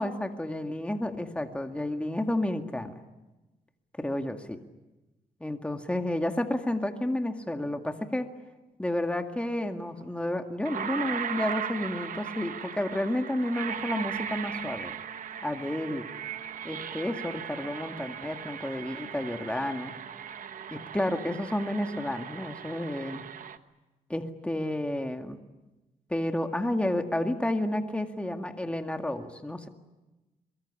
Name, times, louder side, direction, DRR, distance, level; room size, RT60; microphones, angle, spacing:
voice 1, 0.0-3.0 4.0-4.6 5.4-8.3 8.8-14.9 15.4-16.1 16.6-19.9 20.7-23.3 24.1-25.4 26.1-29.7, left 1 dB, 10° left, 5 dB, 2.0 m, -31 dB
sound 1, 10.0-10.1 10.7-23.6, right 8 dB, 65° right, 1.3 m, -38 dB
23.0 x 22.5 x 10.0 m, 1.1 s
cardioid pair, 85°, 15 cm